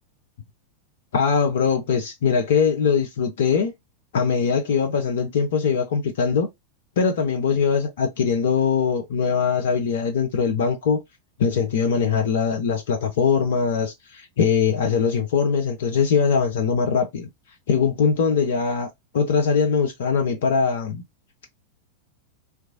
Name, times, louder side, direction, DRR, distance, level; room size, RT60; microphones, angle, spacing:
voice 1, 1.1-3.7 4.1-6.5 7.0-11.0 11.4-17.3 17.7-21.0, left 6 dB, 60° left, 0.5 m, -21 dB
2.9 x 2.3 x 2.4 m
figure-of-eight pair, 90°, 0 cm